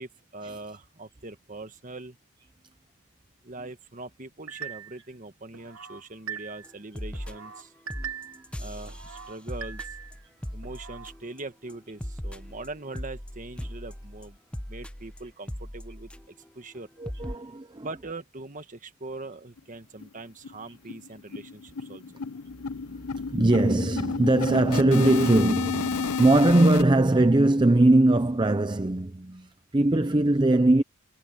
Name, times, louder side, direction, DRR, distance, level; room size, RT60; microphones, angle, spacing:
voice 1, 0.0-2.2 3.4-7.7 8.6-10.0 10.5-14.4 14.7-16.1 16.5-16.9 17.8-22.0, right 2 dB, 35° right, 1.5 m, -41 dB
sound 1, 4.5-5.1 5.5-6.8 7.1-8.5 8.9-10.2 10.6-11.1, right 7 dB, 65° right, 1.3 m, -41 dB
sound 2, 6.6-6.7 6.9-7.6 7.9-11.4 11.7-16.5 16.8-16.9 17.0-17.3, equal, 5° left, 0.9 m, -38 dB
voice 2, 17.0-18.1 20.7-20.8 23.3-30.8, right 2 dB, 20° right, 0.6 m, -21 dB
sound 3, 19.6-19.7 20.0-20.1 20.4-20.6 20.9-26.8, left 5 dB, 85° left, 0.7 m, -31 dB
head